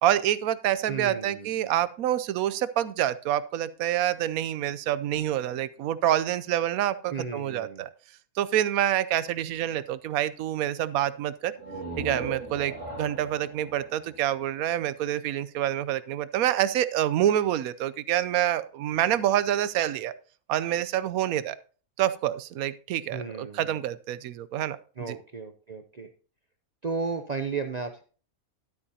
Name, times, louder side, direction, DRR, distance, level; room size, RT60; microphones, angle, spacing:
voice 1, 0.0-7.9 8.4-11.5 12.0-20.1 20.5-21.6 22.0-25.2, right 12 dB, 80° right, 16 dB, 1.1 m, -27 dB
voice 2, 0.9-1.7 7.1-7.8 23.1-23.8 25.0-26.1 26.8-28.0, right 4 dB, 50° right, 6 dB, 0.5 m, -34 dB
sound 1, 11.5-15.2, right 2 dB, 65° right, 2.3 m, -39 dB
12.0 x 8.5 x 2.8 m, 0.40 s
omnidirectional pair, 1.5 m